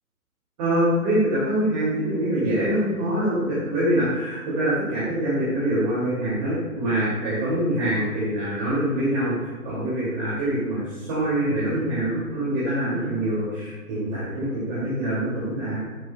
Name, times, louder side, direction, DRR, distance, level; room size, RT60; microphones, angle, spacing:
voice 1, 0.6-15.8, right 1 dB, 25° right, -8 dB, 2.3 m, -24 dB
10.5 x 8.2 x 2.2 m, 1.4 s
figure-of-eight pair, 140°, 45 cm